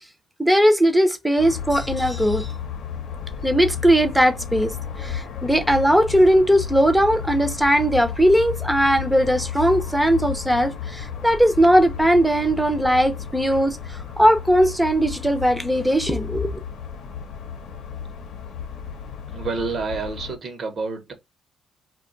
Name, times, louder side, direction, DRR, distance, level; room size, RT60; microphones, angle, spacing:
voice 1, 0.4-2.5 3.4-16.6, equal, 5° right, 0.6 m, -19 dB
sound 1, 1.4-20.4, left 7 dB, 80° left, 0.7 m, -33 dB
voice 2, 19.3-21.1, right 4 dB, 55° right, 0.9 m, -28 dB
2.3 x 2.2 x 3.7 m
cardioid pair, 90°, 0 cm